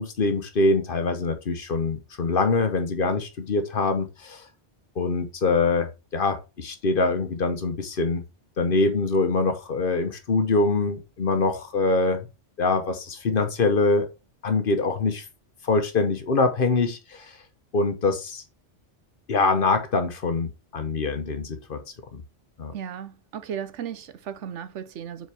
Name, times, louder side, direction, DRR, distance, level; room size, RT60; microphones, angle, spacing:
voice 1, 0.0-4.4 5.0-8.2 8.6-12.3 12.6-14.1 14.4-15.2 15.6-17.3 17.7-18.4 19.3-21.8 22.1-22.2 22.6-22.7, left 3 dB, 50° left, 1.0 m, -24 dB
voice 2, 22.7-25.3, right 8 dB, 90° right, 1.1 m, -35 dB
7.1 x 4.5 x 3.4 m
omnidirectional pair, 1.2 m